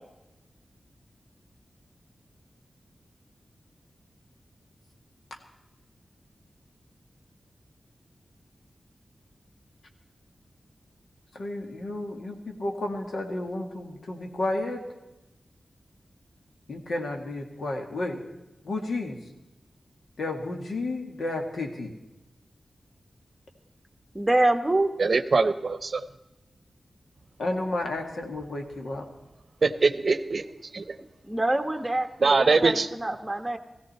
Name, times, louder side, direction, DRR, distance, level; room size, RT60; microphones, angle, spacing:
voice 1, 11.3-14.8 16.7-18.2 18.6-19.2 20.2-21.9 27.4-29.1, left 2 dB, 90° left, 2 dB, 1.9 m, -32 dB
voice 2, 24.1-24.9 31.0-33.6, right 2 dB, 10° right, 6 dB, 1.2 m, -26 dB
voice 3, 25.0-26.0 29.6-30.5 30.7-30.8 32.2-32.9, right 4 dB, 55° right, 13 dB, 0.8 m, -22 dB
19.0 x 16.0 x 4.3 m, 1.0 s
wide cardioid pair, 110°, 0 cm